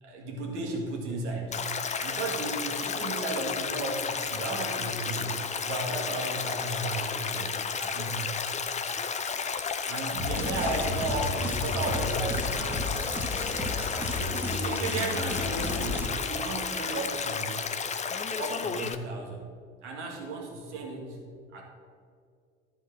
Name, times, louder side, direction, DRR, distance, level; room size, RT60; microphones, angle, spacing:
voice 1, 0.0-1.6 2.0-8.3 9.9-12.5 14.2-17.6 18.4-19.5 19.8-21.2 21.5-21.6, right 2 dB, 70° right, 0 dB, 2.0 m, -34 dB
Stream, 1.5-19.0, left 6 dB, 20° left, 0.7 m, -32 dB
sound 1, 10.2-16.1, left 2 dB, 5° right, 1.8 m, -33 dB
13.0 x 4.5 x 6.2 m, 2.2 s
figure-of-eight pair, 65°, 36 cm